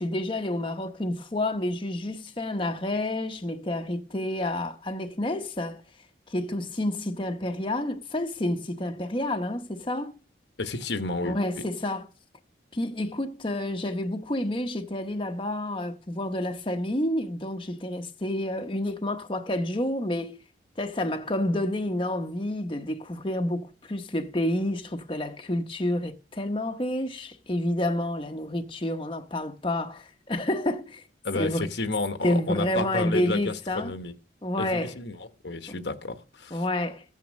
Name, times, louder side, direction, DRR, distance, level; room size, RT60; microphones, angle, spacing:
voice 1, 0.0-5.8 6.3-10.1 11.3-12.1 12.7-20.4 20.8-31.0 31.3-31.7 32.2-33.9 34.4-35.0 35.7-35.8 36.5-37.0, left 1 dB, 25° left, 0.9 m, -29 dB
voice 2, 10.6-11.6 31.2-34.1 34.6-36.6, left 3 dB, 65° left, 1.1 m, -31 dB
15.0 x 9.4 x 6.3 m
head